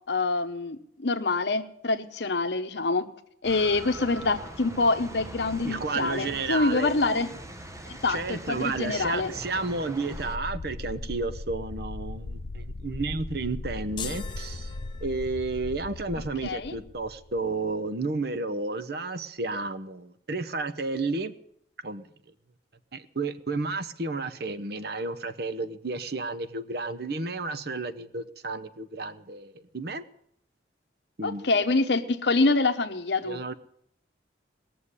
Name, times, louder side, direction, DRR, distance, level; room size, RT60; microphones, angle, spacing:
voice 1, 0.1-3.1 3.4-7.3 7.9-9.4 16.4-16.7 31.2-33.4, left 3 dB, 70° left, 7 dB, 1.0 m, -26 dB
sound 1, 3.4-10.4, right 1 dB, 15° right, 0.8 m, -42 dB
voice 2, 5.6-6.9 8.1-14.7 15.0-21.3 21.8-22.0 22.9-30.0 31.2-31.5 33.2-33.5, right 3 dB, 60° right, 13 dB, 0.9 m, -32 dB
sound 2, 10.1-17.7, left 2 dB, 90° left, 0.7 m, -38 dB
sound 3, 14.0-15.5, left 7 dB, 25° left, 0.8 m, -41 dB
19.5 x 7.0 x 9.7 m, 0.71 s
head